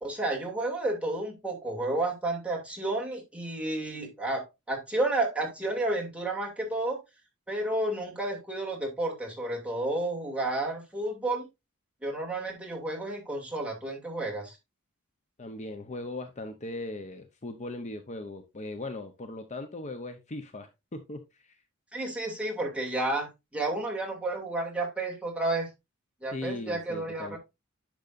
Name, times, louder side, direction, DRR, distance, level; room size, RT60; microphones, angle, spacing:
voice 1, 0.0-7.0 7.5-11.5 12.0-14.6 21.9-25.7 26.2-27.4, right 2 dB, 5° right, -2 dB, 2.7 m, -31 dB
voice 2, 15.4-21.6 26.3-27.4, left 2 dB, 35° left, 8 dB, 0.8 m, -39 dB
10.5 x 6.3 x 2.6 m, 0.23 s
head